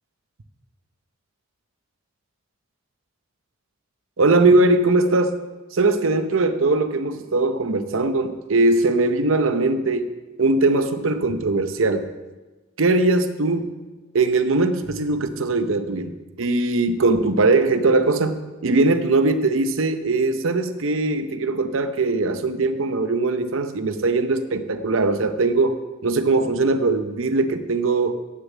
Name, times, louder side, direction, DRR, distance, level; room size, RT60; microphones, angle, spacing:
voice 1, 4.2-5.3 5.7-10.1 10.4-12.1 12.8-13.7 14.1-25.8 26.0-28.1, right 2 dB, 75° right, 10 dB, 0.7 m, -20 dB
9.2 x 6.6 x 7.2 m, 1.2 s
head